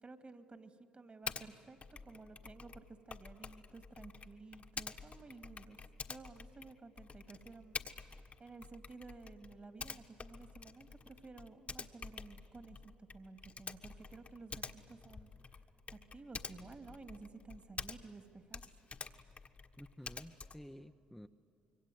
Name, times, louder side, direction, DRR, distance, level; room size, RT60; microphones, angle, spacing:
voice 1, 0.0-1.8 2.0-5.8 6.1-8.1 8.4-15.6 15.9-18.7, right 3 dB, 35° right, 8 dB, 2.4 m, -54 dB
Typing, 1.3-1.5 1.8-18.2 18.5-20.7, left 4 dB, 40° left, 1.5 m, -48 dB
voice 2, 19.8-21.3, equal, ahead, 5 dB, 0.9 m, -52 dB
26.0 x 23.5 x 9.4 m, 2.6 s
hypercardioid pair, 55°, 3 cm